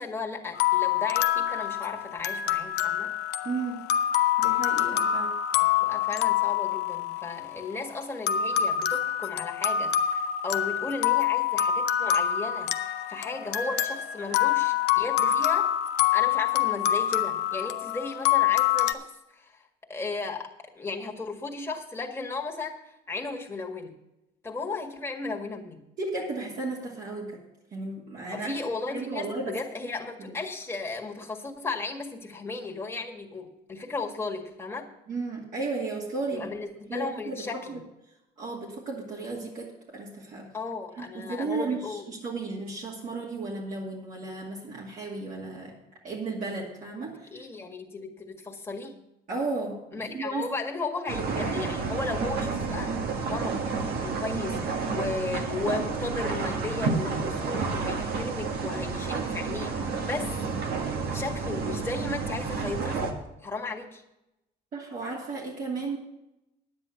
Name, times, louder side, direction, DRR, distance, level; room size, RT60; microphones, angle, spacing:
voice 1, 0.0-3.1 5.8-15.7 16.1-20.5 20.8-24.0 24.4-25.8 28.3-34.9 36.3-37.8 40.5-42.1 47.3-49.0 49.9-53.6 54.0-60.5 61.1-64.0, left 3 dB, 15° left, 1 dB, 1.8 m, -35 dB
sound 1, 0.5-7.7 8.3-18.9, left 11 dB, 80° left, 0.6 m, -26 dB
voice 2, 3.4-3.8 4.4-5.4 26.0-27.4 27.7-28.5 28.9-29.6 30.3-30.4 35.1-36.5 36.9-37.8 38.4-40.5 41.0-45.7 46.0-47.4 49.3-50.5 64.7-66.0, right 3 dB, 55° right, -4 dB, 2.3 m, -34 dB
sound 2, 51.1-63.1, right 4 dB, 70° right, 1.7 m, -30 dB
10.0 x 9.1 x 5.8 m, 0.90 s
cardioid pair, 110°, 17 cm